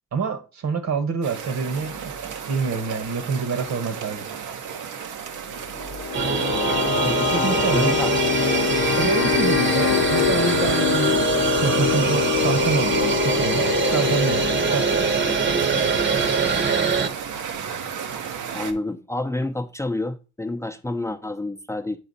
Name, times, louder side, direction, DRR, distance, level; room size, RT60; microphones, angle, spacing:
voice 1, 0.1-2.1 2.5-4.3 7.3-8.0 9.0-11.2 11.6-15.1, right 5 dB, 65° right, 1.4 m, -27 dB
sound 1, 1.2-18.7, right 7 dB, 80° right, 1.0 m, -34 dB
sound 2, 5.7-16.6, left 10 dB, 55° left, 0.7 m, -25 dB
voice 2, 6.1-6.5 6.8-8.6 16.4-16.7 18.5-22.0, left 2 dB, 10° left, 0.6 m, -29 dB
sound 3, 6.1-17.1, right 5 dB, 40° right, 1.0 m, -23 dB
8.3 x 4.1 x 4.1 m
cardioid pair, 90°, 30 cm